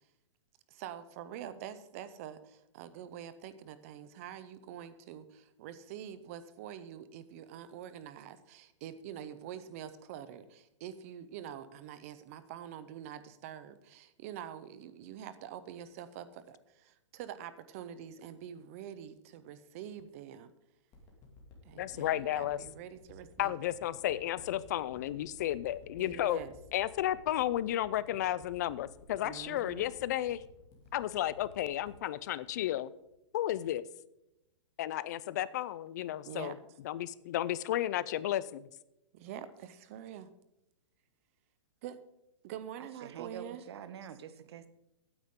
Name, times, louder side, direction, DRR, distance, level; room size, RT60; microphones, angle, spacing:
voice 1, 0.7-20.5 21.6-23.6 26.0-26.5 29.2-29.9 36.2-36.5 39.1-40.3 41.8-42.0 42.4-43.6, right 10 dB, 30° right, 13 dB, 0.6 m, -46 dB
sound 1, 20.9-33.3 33.7-33.8, left 3 dB, 20° left, 2.2 m, -56 dB
voice 2, 21.8-22.6 23.4-26.4 26.7-30.4 30.9-32.9 33.3-33.8 34.8-36.5 36.8-38.7, left 13 dB, 35° left, 18 dB, 0.4 m, -33 dB
voice 3, 42.8-44.7, right 8 dB, 60° right, 13 dB, 1.0 m, -46 dB
15.5 x 9.5 x 3.7 m, 0.88 s
hypercardioid pair, 165°, 16 cm